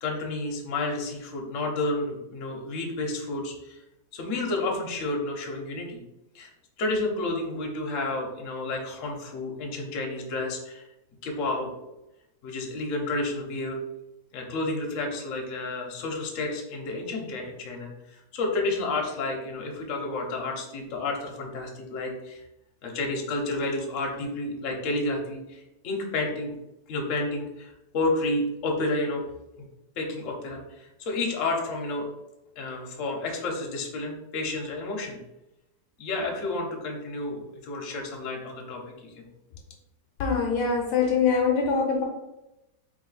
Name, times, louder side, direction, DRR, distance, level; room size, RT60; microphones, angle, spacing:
voice 1, 0.0-3.8 4.1-6.0 6.3-6.5 6.8-10.8 11.2-11.7 12.4-13.8 14.3-22.4 22.8-26.5 26.9-29.2 30.0-32.1 32.6-35.2 36.0-39.3, left 2 dB, 50° left, 1 dB, 1.1 m, -31 dB
voice 2, 40.2-42.0, left 5 dB, 70° left, 1 dB, 1.2 m, -23 dB
3.7 x 3.4 x 3.9 m, 0.92 s
omnidirectional pair, 1.9 m